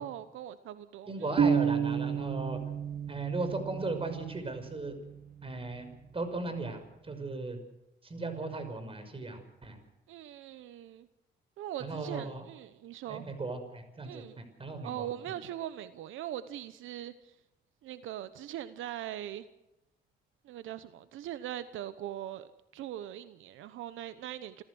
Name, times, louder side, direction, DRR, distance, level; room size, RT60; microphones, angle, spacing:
voice 1, 0.0-1.3 10.1-11.1 11.6-13.3 14.0-14.4 14.8-17.3 17.8-19.5 20.4-24.6, right 12 dB, 85° right, 13 dB, 1.0 m, -41 dB
voice 2, 1.1-2.6 3.1-4.9 5.4-5.9 6.1-7.6 8.0-9.8 11.8-12.4 13.1-15.1, right 3 dB, 30° right, 8 dB, 5.7 m, -37 dB
sound 1, 1.4-5.1, right 7 dB, 45° right, 1.6 m, -31 dB
28.5 x 14.5 x 6.3 m, 0.93 s
cardioid pair, 90°, 20 cm